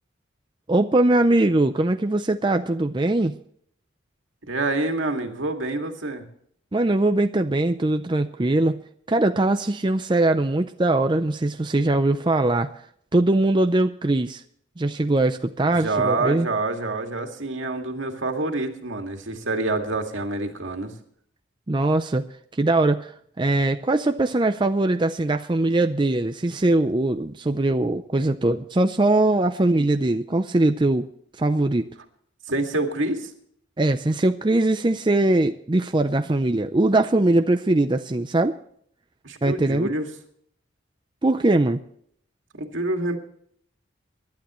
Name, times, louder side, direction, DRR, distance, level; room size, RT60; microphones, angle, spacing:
voice 1, 0.7-3.4 6.7-8.8 9.1-12.7 13.1-14.4 14.8-16.5 21.7-22.2 22.5-31.1 31.4-31.9 33.8-38.6 39.4-39.9 41.2-41.8, right 2 dB, 25° right, 8 dB, 0.5 m, -21 dB
voice 2, 4.5-6.2 15.7-20.9 32.5-33.3 39.2-40.1 42.5-43.2, right 2 dB, 75° right, 4 dB, 2.1 m, -27 dB
24.5 x 12.0 x 3.1 m, 0.65 s
head